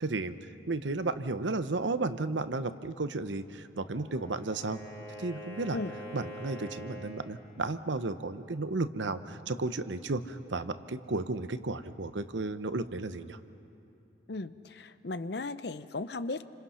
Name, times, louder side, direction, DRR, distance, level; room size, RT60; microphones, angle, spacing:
voice 1, 0.0-0.4 0.7-4.8 5.2-5.8 6.1-13.4, right 3 dB, 80° right, 11 dB, 0.9 m, -33 dB
Wind instrument woodwind instrument, 3.8-7.4, equal, 15° left, 4.1 m, -45 dB
voice 2, 14.3-16.4, left 3 dB, 60° left, 13 dB, 0.7 m, -36 dB
29.0 x 26.0 x 5.7 m, 2.8 s
head